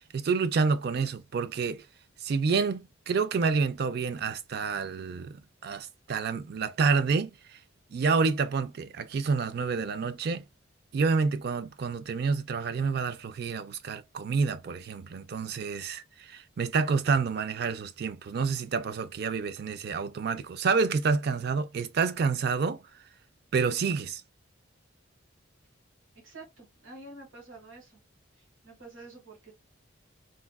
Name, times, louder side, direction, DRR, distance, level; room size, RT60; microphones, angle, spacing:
voice 1, 0.1-1.8 2.2-5.4 5.6-7.3 7.9-10.4 10.9-22.8 23.5-24.2, right 5 dB, 50° right, 0.3 m, -28 dB
voice 2, 26.2-28.0 28.3-29.5, right 2 dB, 80° right, 1.5 m, -48 dB
3.5 x 2.3 x 2.2 m
head